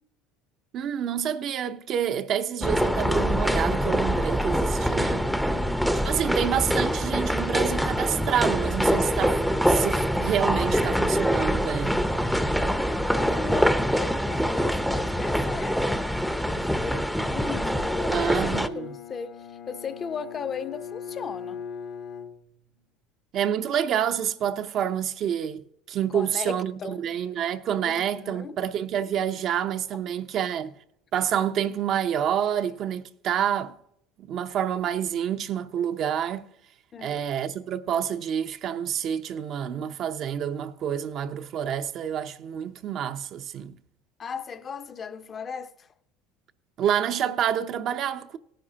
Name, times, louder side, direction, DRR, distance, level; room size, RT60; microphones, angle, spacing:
voice 1, 0.7-5.2 6.0-12.0 18.1-18.9 23.3-30.7 31.1-33.8 34.2-36.5 37.0-43.8 46.8-48.4, right 9 dB, 55° right, 0.7 m, -28 dB
sound 1, 2.6-18.7, equal, ahead, 0.7 m, -24 dB
voice 2, 5.4-5.8 10.4-11.0 12.5-21.6 26.1-27.1 27.8-28.6 36.9-37.3 44.2-45.9, left 6 dB, 35° left, 0.8 m, -37 dB
Bowed string instrument, 17.5-22.9, left 7 dB, 60° left, 1.2 m, -40 dB
18.0 x 10.0 x 2.9 m
supercardioid pair, 90°, 0 cm